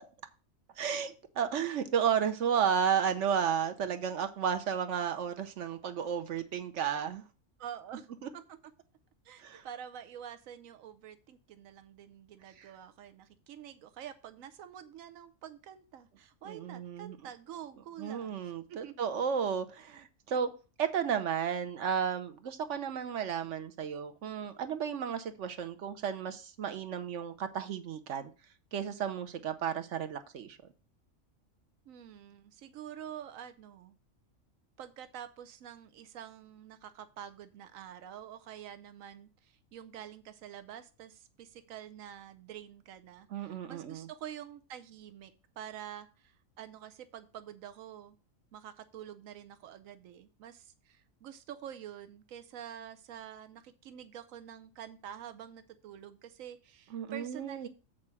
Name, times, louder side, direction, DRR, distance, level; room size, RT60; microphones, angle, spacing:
voice 1, 0.8-7.2 8.2-8.3 9.4-9.6 12.6-12.7 16.4-17.2 18.0-20.5 20.8-28.3 28.7-30.6 43.3-44.1 56.9-57.7, right 7 dB, 70° right, 9 dB, 1.1 m, -33 dB
voice 2, 7.6-8.1 8.3-8.4 9.2-18.4 18.7-19.0 31.9-33.9 34.8-48.2 48.5-57.7, right 10 dB, 90° right, 12 dB, 1.1 m, -47 dB
7.7 x 4.4 x 6.0 m, 0.33 s
omnidirectional pair, 1.4 m